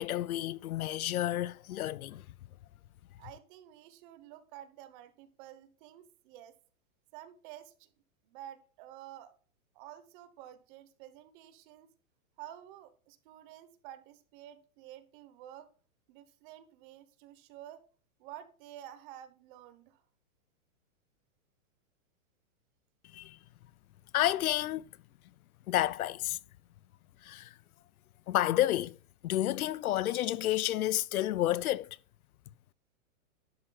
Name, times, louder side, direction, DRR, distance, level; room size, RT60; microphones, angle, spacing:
voice 1, 0.0-2.3 23.1-23.4 24.1-24.9 25.7-26.4 27.2-27.5 28.3-29.0 29.2-31.9, left 14 dB, 85° left, 0.6 m, -30 dB
voice 2, 3.2-6.5 7.1-7.9 8.2-9.3 9.7-11.9 12.4-15.7 16.1-17.8 18.2-20.0, right 12 dB, 35° right, 1.1 m, -50 dB
11.5 x 8.6 x 2.4 m
hypercardioid pair, 145°, 42 cm